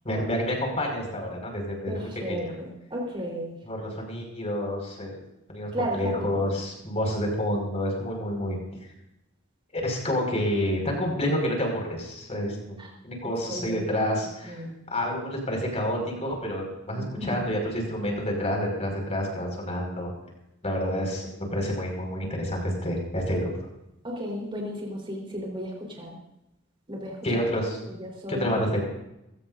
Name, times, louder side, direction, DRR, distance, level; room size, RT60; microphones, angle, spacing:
voice 1, 0.0-1.9 2.3-2.5 3.6-5.2 5.5-8.6 9.7-12.8 13.0-14.6 14.9-20.1 20.6-23.5 27.2-27.8 28.3-28.8, equal, 35° left, 0 dB, 5.5 m, -28 dB
voice 2, 1.9-3.6 5.7-6.3 12.8-12.9 13.5-14.7 17.0-17.4 24.0-26.2 26.9-27.2 27.9-28.6, equal, 25° right, 0 dB, 4.1 m, -34 dB
21.5 x 17.5 x 2.7 m, 0.86 s
head